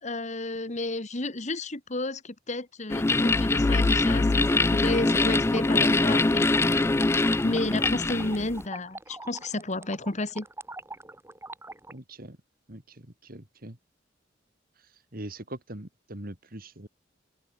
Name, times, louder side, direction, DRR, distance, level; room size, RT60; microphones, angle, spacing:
voice 1, 0.0-6.5 7.4-10.5, left 2 dB, 40° left, 1.8 m, -32 dB
sound 1, 2.9-8.6, left 2 dB, 15° left, 0.3 m, -23 dB
sound 2, 3.3-6.0, left 3 dB, 75° left, 0.6 m, -29 dB
sound 3, 4.9-11.9, right 2 dB, 15° right, 3.1 m, -44 dB
voice 2, 11.9-12.4 12.7-13.8 14.8-16.9, right 1 dB, 50° right, 3.1 m, -42 dB
head